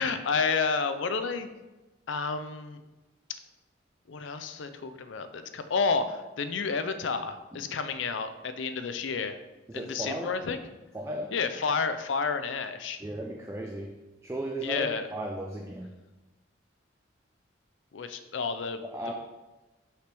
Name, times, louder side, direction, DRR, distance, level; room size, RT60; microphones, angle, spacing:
voice 1, 0.0-1.5 2.1-2.8 4.1-9.4 9.7-10.6 11.3-13.0 14.6-15.1 17.9-18.8, left 5 dB, 75° left, 10 dB, 0.5 m, -30 dB
voice 2, 9.7-10.4 10.9-11.3 13.0-13.9 14.2-15.9 18.8-19.1, right 1 dB, 15° right, 1 dB, 0.4 m, -35 dB
5.9 x 5.6 x 3.4 m, 1.1 s
head